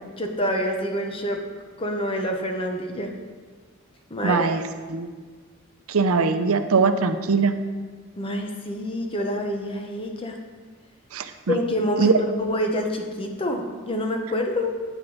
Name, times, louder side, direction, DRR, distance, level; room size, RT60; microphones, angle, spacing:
voice 1, 0.2-1.4 1.8-3.1 4.1-4.5 8.2-10.4 11.5-14.7, equal, 25° left, 3 dB, 0.9 m, -27 dB
voice 2, 4.2-4.6 4.9-5.1 5.9-7.5 11.1-11.6 12.0-12.1, right 4 dB, 85° right, 9 dB, 0.6 m, -21 dB
9.2 x 8.9 x 4.0 m, 1.5 s
head